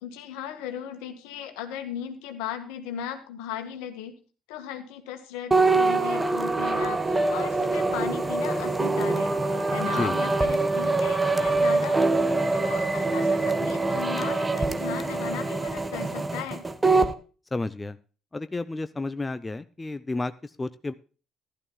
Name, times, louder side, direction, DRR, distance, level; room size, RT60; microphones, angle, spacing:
voice 1, 0.0-4.1 4.5-9.3 9.7-16.6, left 9 dB, 70° left, 7 dB, 1.6 m, -37 dB
sound 1, 5.5-17.1, right 3 dB, 20° right, 1.1 m, -24 dB
voice 2, 17.5-18.0 18.3-20.9, left 2 dB, 20° left, 13 dB, 0.6 m, -31 dB
15.0 x 11.5 x 2.3 m, 0.35 s
figure-of-eight pair, 50°, 0 cm